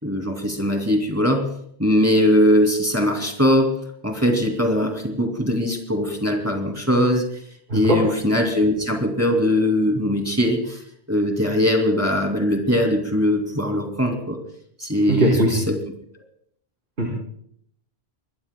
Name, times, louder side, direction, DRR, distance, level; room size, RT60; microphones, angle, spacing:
voice 1, 0.0-1.5 1.8-3.7 4.0-7.2 7.7-10.8 11.1-14.4 14.8-15.8, left 1 dB, 15° right, 2 dB, 2.7 m, -20 dB
voice 2, 15.1-15.5 17.0-17.1, equal, 75° right, -2 dB, 3.9 m, -19 dB
25.0 x 21.0 x 2.3 m, 0.66 s
omnidirectional pair, 1.1 m